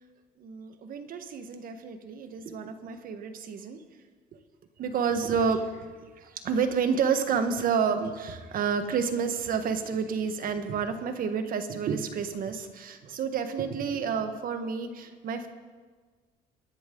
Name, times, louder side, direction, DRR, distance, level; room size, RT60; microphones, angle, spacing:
voice 1, 0.4-3.8 4.8-15.5, right 6 dB, 55° right, 8 dB, 1.4 m, -30 dB
24.0 x 10.5 x 3.9 m, 1.4 s
cardioid pair, 110°, 17 cm